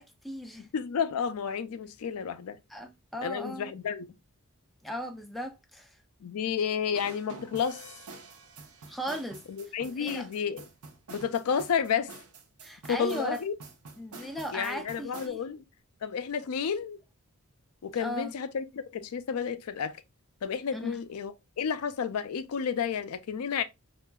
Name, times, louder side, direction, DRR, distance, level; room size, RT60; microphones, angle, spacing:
voice 1, 0.0-0.7 2.7-3.7 4.8-6.0 8.8-9.4 10.0-10.3 12.6-13.4 14.0-15.4 18.0-18.3 20.7-21.0, equal, ahead, 0.4 m, -37 dB
voice 2, 0.6-2.6 3.2-4.1 6.2-7.8 9.5-10.7 11.1-12.1 12.9-13.5 14.2-15.6 16.0-17.0 17.8-20.0 20.4-23.6, left 7 dB, 80° left, 0.4 m, -31 dB
sound 1, 6.9-15.3, right 3 dB, 75° right, 0.7 m, -47 dB
4.5 x 2.4 x 2.2 m
head